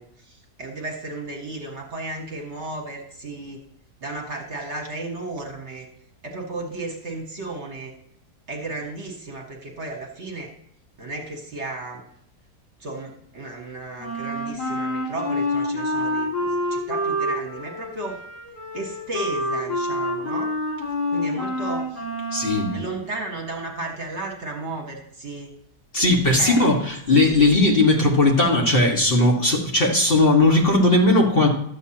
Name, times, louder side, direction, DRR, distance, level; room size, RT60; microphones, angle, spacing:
voice 1, 0.0-3.6 4.0-5.9 6.2-7.9 8.5-10.5 11.0-12.0 12.8-18.2 18.7-20.5 21.1-22.0 22.7-25.5 26.4-26.7 27.1-27.2, right 2 dB, 45° right, 1 dB, 1.5 m, -34 dB
Wind instrument woodwind instrument, 14.0-22.8, left 1 dB, 90° left, 4.0 m, -27 dB
voice 2, 22.3-22.7 25.9-31.5, left 2 dB, 35° left, 0 dB, 1.7 m, -18 dB
12.0 x 8.0 x 2.8 m, 0.69 s
omnidirectional pair, 1.7 m